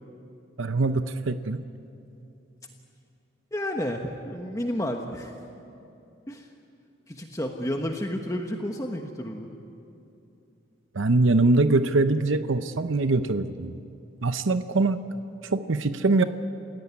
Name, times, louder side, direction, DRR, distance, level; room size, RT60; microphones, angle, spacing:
voice 1, 0.6-1.6 10.9-13.7 14.2-15.0 15.5-16.2, right 3 dB, 80° right, 10 dB, 0.8 m, -23 dB
voice 2, 3.5-5.3 6.3-6.5 7.1-9.5, equal, 15° left, 3 dB, 1.2 m, -31 dB
28.0 x 17.0 x 9.7 m, 2.7 s
head